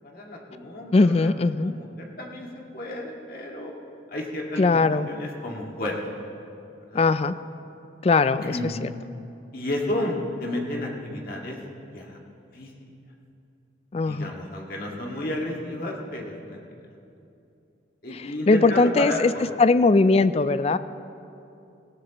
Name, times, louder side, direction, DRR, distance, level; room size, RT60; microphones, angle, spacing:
voice 1, 0.0-2.5 2.7-3.7 4.1-4.8 5.1-6.0 6.9-7.0 8.4-8.7 9.5-11.6 11.9-12.2 12.5-12.7 14.1-16.6 18.0-19.2, left 1 dB, 50° left, -1 dB, 1.9 m, -32 dB
voice 2, 0.9-1.7 4.6-5.1 6.9-7.3 8.0-8.9 13.9-14.3 18.1-19.3 19.6-20.8, left 3 dB, 35° left, 14 dB, 0.3 m, -20 dB
18.5 x 17.0 x 3.0 m, 2.7 s
head